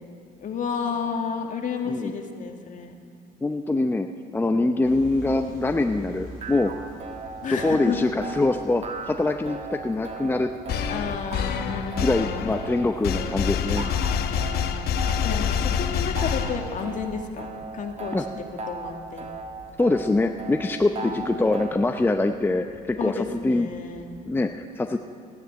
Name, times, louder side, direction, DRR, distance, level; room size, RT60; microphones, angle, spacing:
voice 1, 0.4-2.9 7.4-8.1 10.9-12.6 15.2-17.5 17.7-18.1 18.7-19.3 21.0-21.4 23.0-24.1, left 6 dB, 50° left, 4 dB, 1.9 m, -31 dB
voice 2, 3.4-6.7 7.5-10.5 12.0-13.9 18.1-18.2 19.8-23.7 24.2-25.0, left 2 dB, 10° left, 6 dB, 0.6 m, -24 dB
sound 1, 4.8-24.4, right 2 dB, 60° right, 4.8 m, -49 dB
sound 2, 6.1-21.7, right 4 dB, 40° right, 1.6 m, -38 dB
sound 3, 10.7-17.0, left 8 dB, 70° left, 1.0 m, -27 dB
15.0 x 9.9 x 9.3 m, 2.4 s
cardioid pair, 110°, 17 cm